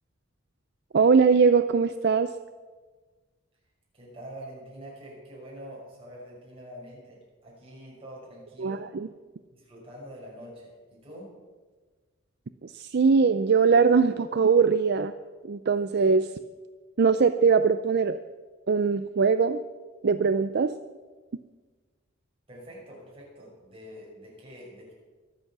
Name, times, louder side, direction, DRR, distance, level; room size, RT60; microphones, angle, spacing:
voice 1, 0.9-2.3 8.6-9.1 12.6-15.1 15.4-16.3 17.0-18.2 18.7-19.6 20.0-20.7, right 5 dB, 50° right, 11 dB, 0.4 m, -21 dB
voice 2, 3.9-8.9 9.5-11.3 22.5-24.9, equal, 30° right, -4 dB, 6.1 m, -45 dB
23.5 x 8.1 x 6.0 m, 1.4 s
head